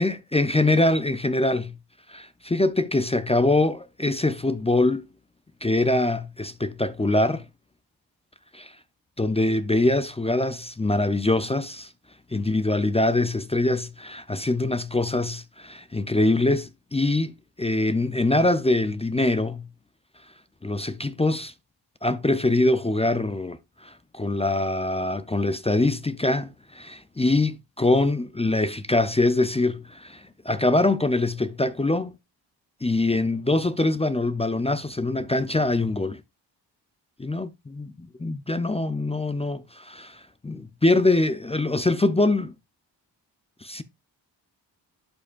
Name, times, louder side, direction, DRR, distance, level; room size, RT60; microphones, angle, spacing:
voice 1, 0.0-1.7 2.1-5.0 5.6-7.4 8.5-8.7 9.2-11.9 12.3-17.3 17.6-19.6 20.6-21.5 22.0-32.2 32.8-36.2 37.2-42.5 43.6-43.8, left 2 dB, 15° left, 0.5 m, -24 dB
11.0 x 5.0 x 2.4 m
cardioid pair, 60°, 44 cm